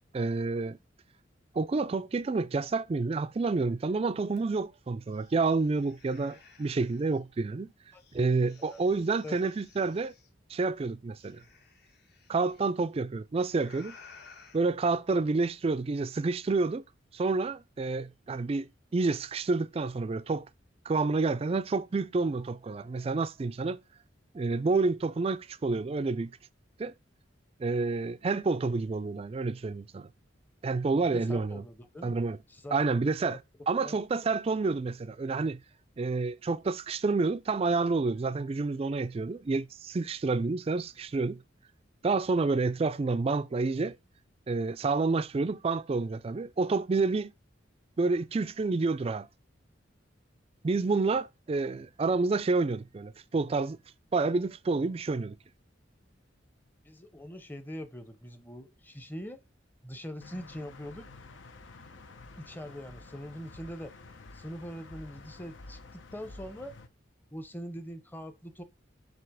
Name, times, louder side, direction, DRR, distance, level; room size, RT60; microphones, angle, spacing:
voice 1, 0.1-0.8 1.5-7.7 8.1-10.1 10.5-11.4 12.3-13.9 14.5-16.8 17.1-20.5 20.9-23.8 24.3-26.3 26.8-26.9 27.6-30.1 30.6-31.6 32.0-32.4 32.7-33.4 33.7-35.6 36.0-41.4 42.0-44.0 44.5-47.3 48.0-49.3 50.6-53.8 54.1-55.4, right 3 dB, 30° right, 0.3 m, -29 dB
sound 1, 4.4-4.5 4.8-7.2 7.9-10.3 11.2-12.7 13.5-14.6, left 5 dB, 60° left, 1.4 m, -57 dB
voice 2, 31.0-32.2 32.5-32.9 33.2-33.4 33.8-34.0 56.8-59.4 59.8-61.1 62.4-63.9 64.3-66.8 67.3-68.6, equal, 10° left, 0.7 m, -42 dB
sound 2, 60.2-66.9, left 3 dB, 75° left, 0.8 m, -50 dB
7.6 x 2.9 x 4.9 m
head